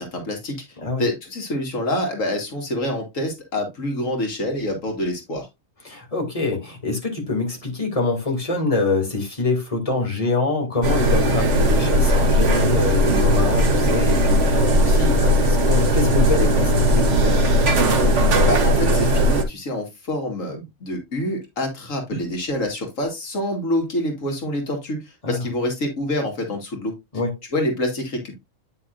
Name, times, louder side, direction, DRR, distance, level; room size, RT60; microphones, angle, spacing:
voice 1, 0.0-0.6 1.0-5.5 18.5-27.0 27.5-28.4, left 1 dB, 85° left, 2.3 m, -26 dB
voice 2, 5.8-17.4 25.2-25.4 27.1-27.3, left 3 dB, 25° left, 2.7 m, -25 dB
sound 1, 10.8-19.4, equal, 65° right, 1.6 m, -18 dB
9.2 x 6.1 x 2.6 m
omnidirectional pair, 1.3 m